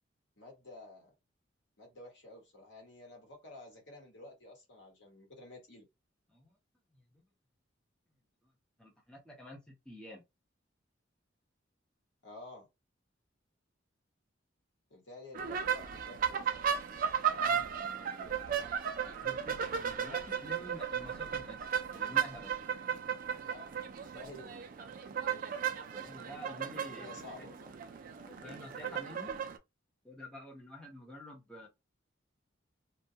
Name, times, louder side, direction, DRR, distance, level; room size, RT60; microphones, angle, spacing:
voice 1, 0.4-1.1 1.8-5.9 12.2-12.7 14.9-16.5 23.4-23.7 24.1-24.5 26.4-27.7, left 2 dB, 65° left, 1.1 m, -51 dB
voice 2, 6.9-7.2 8.8-10.2 17.1-22.5 25.9-27.5 28.2-29.4 30.0-31.7, equal, 5° left, 0.7 m, -50 dB
sound 1, 15.3-29.6, right 7 dB, 45° right, 0.3 m, -35 dB
2.2 x 2.1 x 2.7 m
head